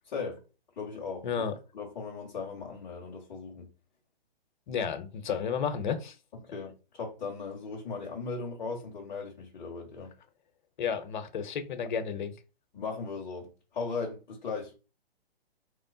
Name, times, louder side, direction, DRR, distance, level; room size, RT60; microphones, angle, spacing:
voice 1, 0.0-0.4 0.8-1.3 1.7-3.7 6.3-10.1 12.7-14.7, left 4 dB, 5° left, 0.3 m, -37 dB
voice 2, 1.2-1.6 4.7-6.2 10.8-12.3, left 7 dB, 50° left, 0.6 m, -32 dB
3.0 x 2.1 x 3.7 m
hypercardioid pair, 135°, 31 cm